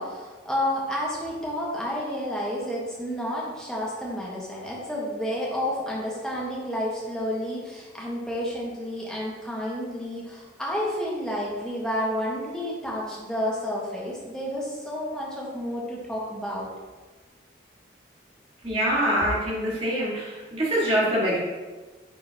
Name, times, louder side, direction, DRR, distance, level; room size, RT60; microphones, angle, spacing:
voice 1, 0.0-16.7, equal, 5° left, -5 dB, 1.2 m, -30 dB
voice 2, 18.6-21.4, equal, 30° right, -6 dB, 1.7 m, -24 dB
9.1 x 3.7 x 2.8 m, 1.3 s
head